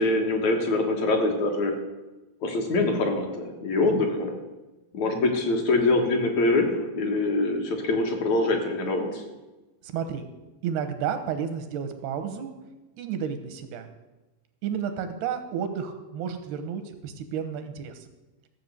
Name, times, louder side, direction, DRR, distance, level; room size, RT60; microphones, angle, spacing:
voice 1, 0.0-1.8 2.4-4.4 4.9-9.2, left 2 dB, 55° left, 3 dB, 2.5 m, -24 dB
voice 2, 9.8-10.3 10.6-12.5 13.0-13.9 14.6-18.1, right 7 dB, 90° right, 7 dB, 3.2 m, -31 dB
15.0 x 7.7 x 6.7 m, 1.1 s
omnidirectional pair, 4.5 m